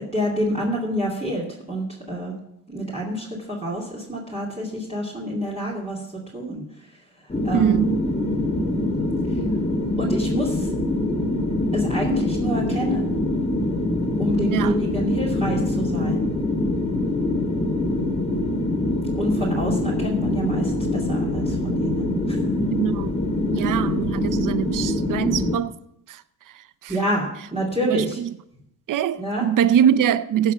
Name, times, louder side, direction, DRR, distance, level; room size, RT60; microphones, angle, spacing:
voice 1, 0.0-2.3 2.7-6.0 6.3-6.6 7.4-7.9 9.3-9.4 10.0-10.7 11.7-13.2 14.2-16.3 19.2-22.4 26.9-28.2 29.2-29.4, equal, 15° right, 2.4 m, -27 dB
sound 1, 7.3-25.6, left 2 dB, 15° left, 1.7 m, -24 dB
voice 2, 7.5-8.0 14.5-14.7 22.7-23.2 23.5-25.7 26.8-26.9 27.8-28.3 28.9-30.5, right 9 dB, 55° right, 0.6 m, -22 dB
16.5 x 5.7 x 5.9 m
cardioid pair, 95°, 39 cm